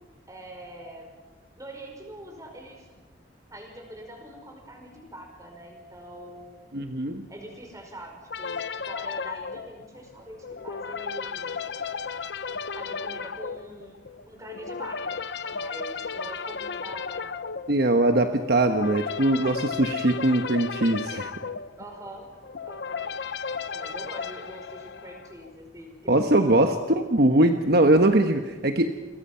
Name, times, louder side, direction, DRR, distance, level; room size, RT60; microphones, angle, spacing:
voice 1, 0.3-1.1 1.6-2.9 3.5-6.6 7.3-11.6 12.8-14.0 14.3-15.2 15.5-17.4 21.8-22.3 22.7-23.1 23.5-26.9, right 1 dB, 20° right, 2 dB, 5.3 m, -43 dB
voice 2, 6.7-7.3 17.7-21.3 26.1-28.9, right 1 dB, 60° right, 6 dB, 1.2 m, -21 dB
sound 1, 8.3-25.5, left 5 dB, 65° left, 0.8 m, -34 dB
29.0 x 23.0 x 5.7 m, 1.3 s
head